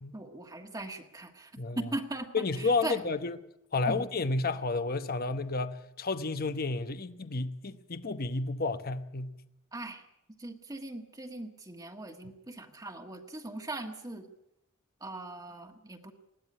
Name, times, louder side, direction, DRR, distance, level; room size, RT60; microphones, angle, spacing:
voice 1, 0.1-3.0 3.9-4.1 9.7-10.0 10.4-14.3 15.0-16.1, right 2 dB, 20° right, 1.4 m, -40 dB
voice 2, 1.6-1.9 2.3-3.4 3.7-9.4, left 3 dB, 45° left, 0.9 m, -31 dB
20.5 x 16.0 x 9.9 m
head